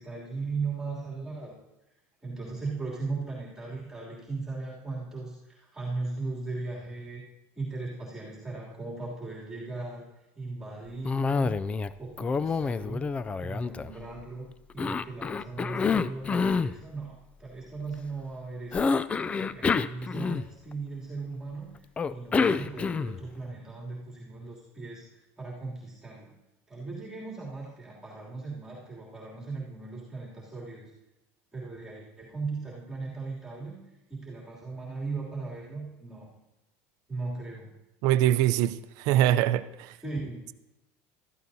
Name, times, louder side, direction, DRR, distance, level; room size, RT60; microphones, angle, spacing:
voice 1, 0.0-1.5 2.2-7.2 7.6-10.0 10.3-11.5 12.0-13.1 13.4-18.8 19.4-21.7 22.1-26.3 26.7-30.8 31.5-33.8 34.1-36.3 37.1-37.7 40.0-40.5, right 3 dB, 10° right, -6 dB, 2.9 m, -37 dB
Cough, 11.0-11.9 12.2-14.2 14.8-16.7 18.7-20.7 22.0-23.3, left 5 dB, 20° left, 0.3 m, -28 dB
voice 2, 38.0-39.9, right 12 dB, 65° right, 12 dB, 0.5 m, -23 dB
15.5 x 13.5 x 2.7 m, 0.96 s
supercardioid pair, 130°, 7 cm